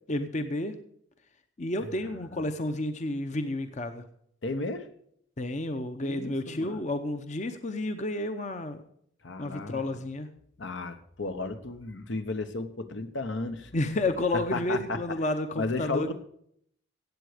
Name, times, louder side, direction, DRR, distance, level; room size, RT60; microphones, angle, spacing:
voice 1, 0.1-0.7 1.6-4.0 5.4-8.8 9.4-10.3 13.7-16.1, left 1 dB, 40° left, 8 dB, 0.8 m, -31 dB
voice 2, 2.0-2.5 4.4-4.9 6.0-6.8 9.2-9.8 10.6-13.7 14.5-15.0 15.6-16.1, left 3 dB, 75° left, 8 dB, 1.1 m, -34 dB
16.0 x 8.1 x 5.0 m, 0.67 s
head